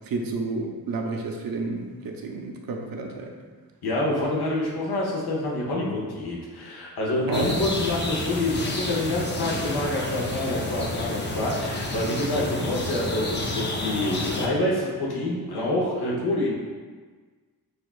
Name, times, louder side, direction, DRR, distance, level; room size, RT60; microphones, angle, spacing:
voice 1, 0.1-3.3 7.3-7.5, right 3 dB, 65° right, 2 dB, 0.6 m, -31 dB
voice 2, 3.8-16.5, left 1 dB, 85° left, -4 dB, 0.9 m, -27 dB
sound 1, 7.3-14.5, left 2 dB, 30° left, 0.6 m, -30 dB
6.3 x 2.4 x 2.4 m, 1.5 s
cardioid pair, 75°, 38 cm